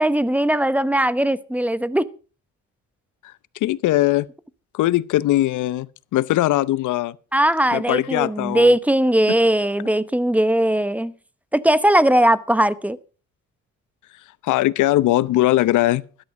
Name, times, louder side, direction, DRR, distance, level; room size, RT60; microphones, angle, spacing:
voice 1, 0.0-2.1 7.3-11.1 11.5-13.0, right 1 dB, 5° right, 0.8 m, -19 dB
voice 2, 3.6-4.3 4.7-5.9 6.1-7.2 7.7-8.7 14.4-16.0, left 15 dB, 80° left, 0.7 m, -20 dB
13.0 x 11.5 x 4.9 m
cardioid pair, 90°, 30 cm